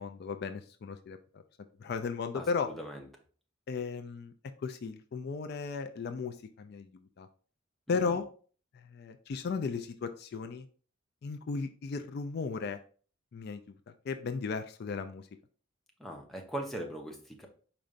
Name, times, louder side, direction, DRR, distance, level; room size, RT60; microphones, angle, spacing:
voice 1, 0.0-1.4 1.8-2.7 3.7-4.3 4.6-6.9 7.2-7.3 7.9-8.2 8.7-10.7 11.2-12.8 13.3-13.7 14.0-15.3, left 5 dB, 50° left, 9 dB, 0.3 m, -35 dB
voice 2, 2.3-3.0 7.9-8.1 16.0-17.5, right 1 dB, ahead, 1 dB, 0.7 m, -40 dB
5.0 x 4.3 x 2.5 m, 0.42 s
head